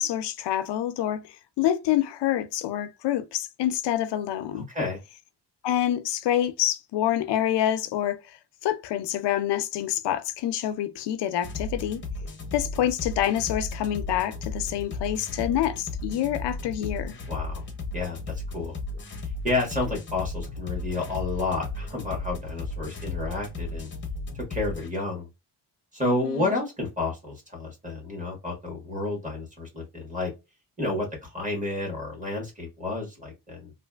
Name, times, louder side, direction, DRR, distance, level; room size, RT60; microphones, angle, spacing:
voice 1, 0.0-4.7 5.6-12.0 12.5-17.1 26.0-26.6, left 11 dB, 85° left, 0.5 m, -27 dB
voice 2, 4.5-5.0 17.3-17.6 17.9-18.2 18.5-18.8 19.4-23.9 24.3-25.3 25.9-30.3 30.8-33.7, left 2 dB, 20° right, 1.6 m, -30 dB
sound 1, 11.4-24.9, left 2 dB, 30° left, 0.7 m, -35 dB
3.2 x 2.5 x 2.3 m
cardioid pair, 145°, 41 cm